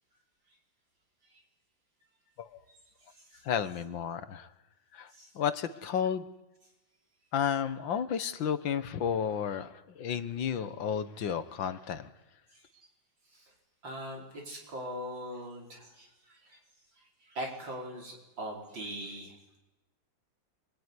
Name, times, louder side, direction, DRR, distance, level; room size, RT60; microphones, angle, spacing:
voice 1, 3.4-4.5 4.9-6.2 7.3-12.1, left 8 dB, 90° left, 12 dB, 2.0 m, -32 dB
voice 2, 13.8-16.6 17.2-19.4, equal, 80° right, 0 dB, 5.7 m, -41 dB
26.0 x 22.0 x 9.8 m, 1.0 s
omnidirectional pair, 2.0 m